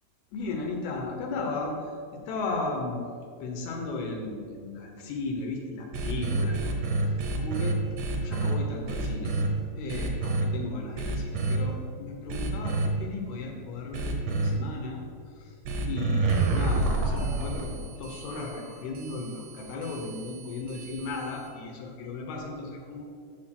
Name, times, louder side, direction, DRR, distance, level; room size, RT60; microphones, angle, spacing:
voice 1, 0.3-1.7 2.3-3.0 3.4-7.8 8.2-9.3 9.7-15.0 15.4-15.5 15.8-23.0, left 3 dB, 80° left, 1 dB, 2.9 m, -35 dB
sound 1, 5.9-8.5 8.9-9.5 9.9-10.4 11.0-11.6 12.3-12.9 13.9-14.5 15.6-21.5, right 3 dB, 80° right, 1.5 m, -29 dB
7.1 x 6.4 x 5.8 m, 2.3 s
omnidirectional pair, 4.6 m